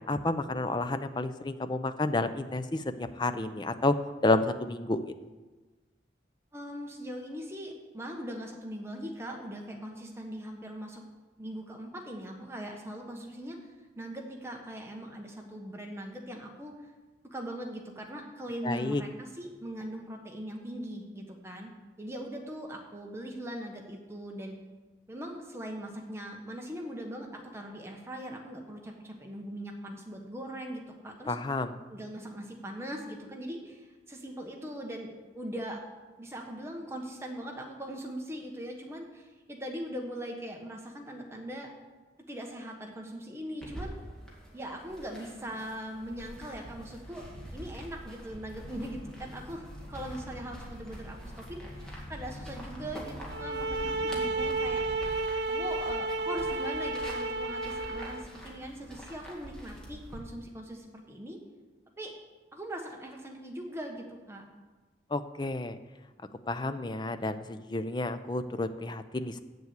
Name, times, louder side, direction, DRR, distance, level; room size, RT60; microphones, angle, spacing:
voice 1, 0.1-3.9 4.2-5.0 18.6-19.0 31.3-31.7 65.1-65.8 66.5-69.4, left 2 dB, 25° left, 11 dB, 0.4 m, -30 dB
voice 2, 6.5-11.0 11.4-13.6 14.0-16.7 17.3-21.7 22.0-24.6 25.1-31.4 31.9-35.8 36.2-41.7 42.3-44.0 44.5-54.8 55.5-61.4 62.0-62.1 62.5-64.4, equal, 15° right, 1 dB, 1.1 m, -40 dB
sound 1, 43.6-60.2, equal, 5° left, 1.9 m, -46 dB
sound 2, 48.2-55.1, equal, 50° left, 1.9 m, -45 dB
sound 3, 53.3-58.3, right 2 dB, 80° right, 0.7 m, -32 dB
7.8 x 7.2 x 8.1 m, 1.3 s
head